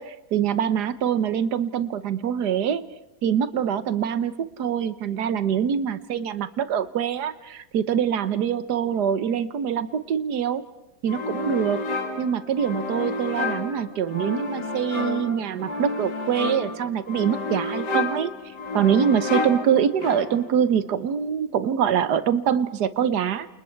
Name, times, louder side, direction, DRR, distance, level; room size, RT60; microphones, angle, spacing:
voice 1, 0.0-2.9 3.2-10.6 11.0-11.8 12.2-18.3 18.7-23.5, right 8 dB, 75° right, 14 dB, 1.6 m, -24 dB
sound 1, 11.1-20.6, left 3 dB, 85° left, 3.1 m, -30 dB
29.5 x 28.0 x 4.6 m, 0.94 s
omnidirectional pair, 1.8 m